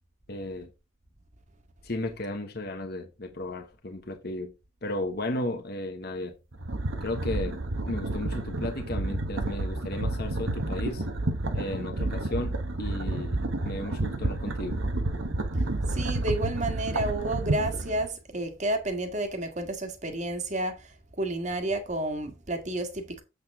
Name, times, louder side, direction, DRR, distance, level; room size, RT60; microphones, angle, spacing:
voice 1, 0.3-0.7 1.8-4.5 4.8-6.3 7.0-11.0 11.5-14.8, left 1 dB, 50° left, 1.2 m, -34 dB
sound 1, 6.5-18.1, right 2 dB, 75° right, 1.2 m, -30 dB
voice 2, 15.9-23.2, right 1 dB, 35° right, 1.7 m, -31 dB
7.9 x 6.5 x 3.6 m
head